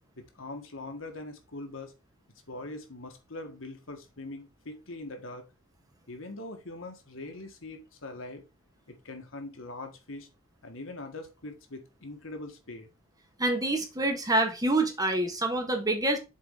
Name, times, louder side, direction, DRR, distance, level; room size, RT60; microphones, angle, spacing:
voice 1, 0.2-1.9 2.5-5.4 6.1-8.4 8.9-10.3 10.6-12.9, left 2 dB, 75° left, 1.7 m, -42 dB
voice 2, 13.4-16.2, right 1 dB, 20° right, 1.4 m, -26 dB
7.3 x 4.3 x 3.7 m
head